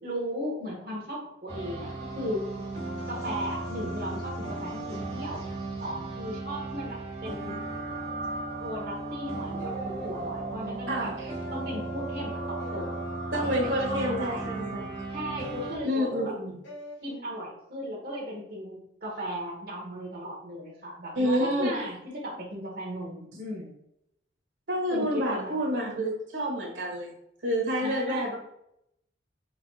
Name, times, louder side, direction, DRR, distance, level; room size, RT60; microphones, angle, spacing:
voice 1, 0.0-2.4 3.1-5.4 5.8-7.6 8.6-11.1 11.5-13.0 13.3-14.6 15.1-16.3 17.0-23.7 24.9-26.0 27.8-28.4, equal, 55° right, -3 dB, 1.4 m, -36 dB
sound 1, 1.5-15.8, right 2 dB, 35° right, 1.6 m, -35 dB
sound 2, 9.6-10.2 11.1-11.7 12.6-13.0 14.0-14.5 15.4-15.9 16.6-17.0, left 1 dB, 80° left, 1.8 m, -44 dB
voice 2, 10.9-11.3 13.3-14.9 15.8-16.6 21.2-21.7 24.7-27.1 27.4-28.4, equal, 90° right, -1 dB, 1.6 m, -28 dB
5.0 x 4.5 x 2.3 m, 0.77 s
head